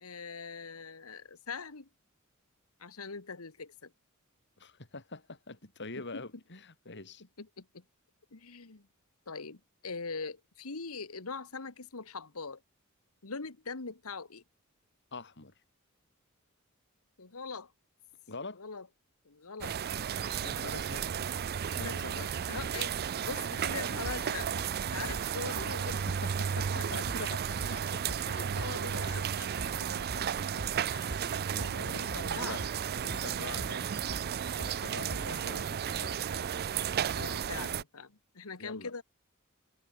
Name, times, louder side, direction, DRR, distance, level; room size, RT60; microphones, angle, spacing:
voice 1, 0.0-1.9 2.8-3.9 6.1-6.2 7.4-7.8 8.3-8.9 9.3-12.6 13.2-14.4 17.2-17.7 18.6-18.9 19.3-19.8 21.8-23.0 23.2-24.5 24.9-26.0 26.7-26.9 28.2-29.5 29.8-30.3 30.9-31.0 32.1-32.6 33.1-33.4 33.7-33.8 35.0-35.5 37.2-39.0, left 4 dB, 85° left, 1.6 m, -42 dB
voice 2, 4.6-7.2 15.1-15.5 18.3-18.6 20.4-21.1 21.7-22.3 25.9-28.4 28.9-29.0 29.6-30.2 30.9-32.6 33.0-33.9 34.6-36.5 38.6-38.9, left 3 dB, 55° left, 4.4 m, -45 dB
sound 1, 19.6-37.8, right 8 dB, 45° right, 0.4 m, -34 dB
sound 2, 23.8-35.6, right 2 dB, 80° right, 3.3 m, -44 dB
head